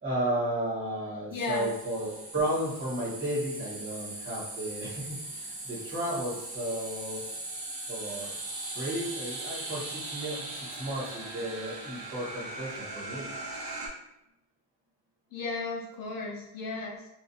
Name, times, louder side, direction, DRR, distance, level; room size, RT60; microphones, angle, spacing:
voice 1, 0.0-7.2 7.9-8.3 8.7-13.3, right 1 dB, 30° right, -9 dB, 1.3 m, -33 dB
voice 2, 1.3-1.7 15.3-17.1, left 3 dB, 55° left, -2 dB, 0.5 m, -34 dB
sound 1, 1.4-13.9, right 2 dB, 70° right, 0.8 m, -39 dB
2.4 x 2.2 x 2.6 m, 0.86 s
wide cardioid pair, 180°, 41 cm